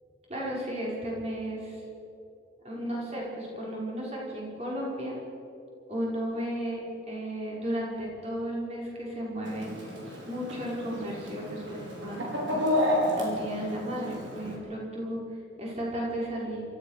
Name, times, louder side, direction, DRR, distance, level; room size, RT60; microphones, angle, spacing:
voice 1, 0.3-1.8 2.6-5.2 5.9-6.8 7.1-9.7 10.3-12.3 13.1-16.6, equal, 35° right, -4 dB, 5.6 m, -34 dB
Chicken rooster, 9.4-14.5, left 1 dB, 75° right, 5.3 m, -31 dB
27.5 x 14.5 x 6.7 m, 2.7 s
head